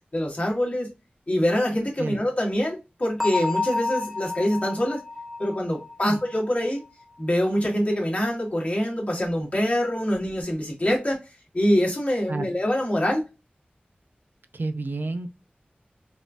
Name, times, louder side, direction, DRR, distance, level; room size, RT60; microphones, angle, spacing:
voice 1, 0.1-0.9 1.3-5.0 5.4-6.8 7.2-11.2 11.5-13.2, equal, 40° left, 1.4 m, -24 dB
Bell, 3.2-6.9, left 3 dB, 5° right, 0.9 m, -31 dB
voice 2, 14.5-15.3, right 3 dB, 70° right, 0.4 m, -29 dB
4.1 x 2.3 x 2.5 m
wide cardioid pair, 50°, 4 cm